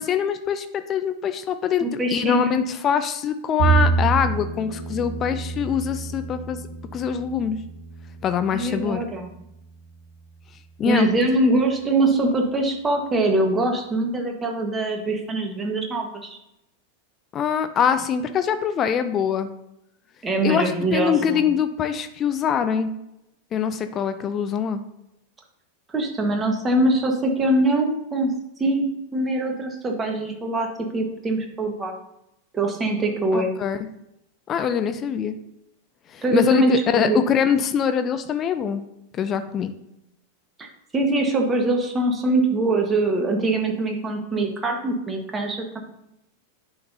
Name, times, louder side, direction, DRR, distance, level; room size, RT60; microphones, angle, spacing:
voice 1, 0.0-6.6 6.9-7.6 8.2-9.0 10.8-11.1 17.3-19.5 20.4-22.9 23.5-24.8 33.3-33.8 34.5-35.3 36.1-38.8 39.1-39.7, left 8 dB, 30° left, 10 dB, 0.5 m, -23 dB
voice 2, 1.8-2.6 8.5-9.3 10.8-16.4 20.2-21.4 25.9-28.3 28.6-28.8 29.1-31.9 32.5-33.5 36.2-37.2 40.6-40.7 40.9-45.8, right 2 dB, 20° right, 3 dB, 1.4 m, -23 dB
Bowed string instrument, 3.6-9.9, right 5 dB, 60° right, 1.1 m, -27 dB
10.0 x 5.8 x 2.7 m, 0.83 s
figure-of-eight pair, 90°, 0 cm